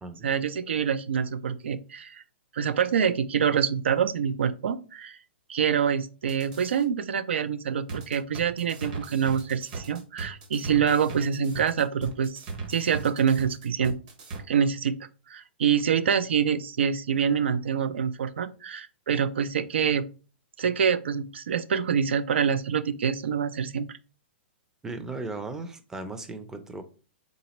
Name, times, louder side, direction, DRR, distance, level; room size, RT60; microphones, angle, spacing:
voice 1, 0.2-2.2 2.5-5.2 5.5-14.0 14.5-14.9 15.3-20.0 20.6-24.0, right 7 dB, 85° right, 0.4 m, -26 dB
sound 1, 6.2-6.8 7.9-14.4, right 3 dB, 50° right, 1.1 m, -39 dB
voice 2, 24.8-26.8, right 3 dB, 10° right, 0.4 m, -36 dB
4.0 x 3.4 x 2.9 m
hypercardioid pair, 140°, 6 cm